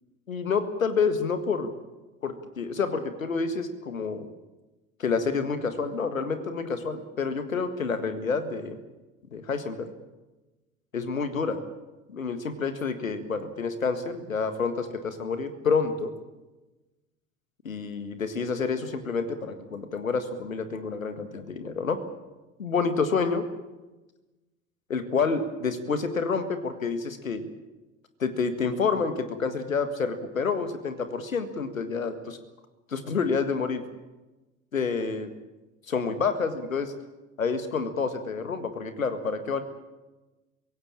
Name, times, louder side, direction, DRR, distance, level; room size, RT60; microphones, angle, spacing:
voice 1, 0.3-1.7 2.2-4.3 5.0-8.8 9.3-9.9 10.9-11.6 12.1-16.1 17.7-22.0 22.6-23.4 24.9-27.5 28.2-32.4 32.9-33.8 34.7-35.3 35.9-36.9 37.4-39.6, left 5 dB, 80° left, 10 dB, 1.8 m, -28 dB
23.5 x 17.0 x 8.7 m, 1.1 s
figure-of-eight pair, 75°, 40 cm